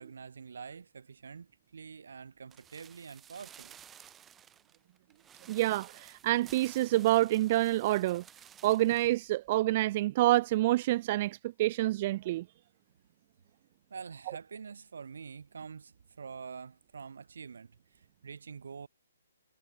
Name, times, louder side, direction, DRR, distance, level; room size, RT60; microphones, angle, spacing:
voice 1, 0.0-3.8 13.9-18.9, right 6 dB, 65° right, 7.5 m, -46 dB
sound 1, 2.5-9.2 9.5-9.6, right 9 dB, 10° right, 2.0 m, -54 dB
voice 2, 5.5-8.2 8.6-12.4, right 16 dB, 25° right, 0.4 m, -27 dB
hypercardioid pair, 175°, 0 cm